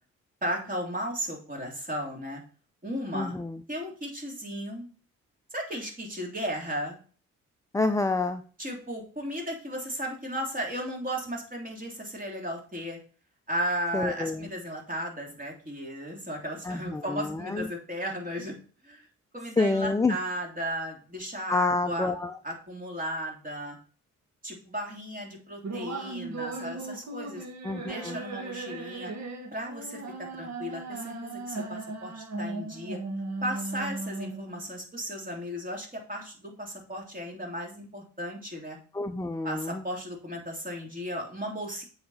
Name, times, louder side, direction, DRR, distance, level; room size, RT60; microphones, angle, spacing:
voice 1, 0.4-2.4 2.8-3.4 3.7-4.9 5.5-7.0 8.6-13.0 13.5-18.6 18.8-19.1 19.3-22.1 22.4-23.8 24.4-27.4 27.9-29.1 29.5-33.0 33.4-38.8 39.4-41.9, equal, 25° right, 0 dB, 3.1 m, -35 dB
voice 2, 3.1-3.6 7.7-8.4 13.9-14.5 16.6-17.7 19.6-20.2 21.5-22.3 27.6-28.2 38.9-39.8, left 3 dB, 10° left, 7 dB, 0.6 m, -28 dB
sound 1, 25.6-34.6, right 2 dB, 60° right, 1.9 m, -37 dB
7.7 x 4.9 x 4.2 m, 0.40 s
supercardioid pair, 55°, 32 cm